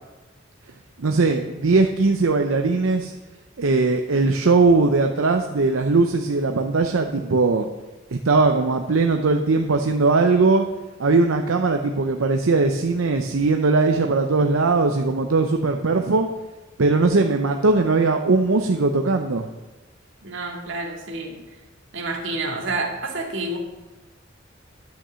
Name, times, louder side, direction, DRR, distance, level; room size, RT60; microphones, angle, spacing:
voice 1, 1.0-3.1 3.6-7.7 8.1-10.6 11.0-16.3 16.8-19.5, right 3 dB, 80° right, 5 dB, 0.7 m, -19 dB
voice 2, 20.2-21.4 21.9-23.6, right 2 dB, 65° right, 1 dB, 2.0 m, -29 dB
11.5 x 6.0 x 6.9 m, 1.2 s
head